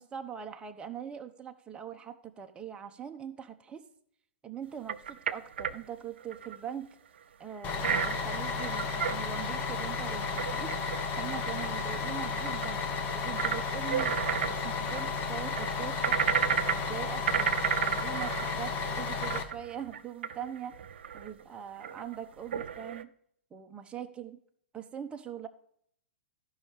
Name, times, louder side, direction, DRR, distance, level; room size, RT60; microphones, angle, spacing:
voice 1, 0.0-3.8 4.4-7.0 7.4-10.7 11.2-12.8 13.1-16.2 16.7-20.8 21.1-23.1 23.5-24.4 24.7-25.5, right 9 dB, 15° right, 5 dB, 0.9 m, -42 dB
sound 1, 4.9-5.7 6.3-6.6 7.8-9.2 10.1-11.0 11.5-11.6 12.4-12.7 13.4-13.6 13.9-15.0 15.6-16.9 17.3-21.4 21.8-22.2 22.5-23.0, right 8 dB, 65° right, 0.6 m, -32 dB
Bus, 7.6-19.4, left 4 dB, 30° left, 1.3 m, -33 dB
13.5 x 5.6 x 5.0 m, 0.66 s
hypercardioid pair, 115°, 6 cm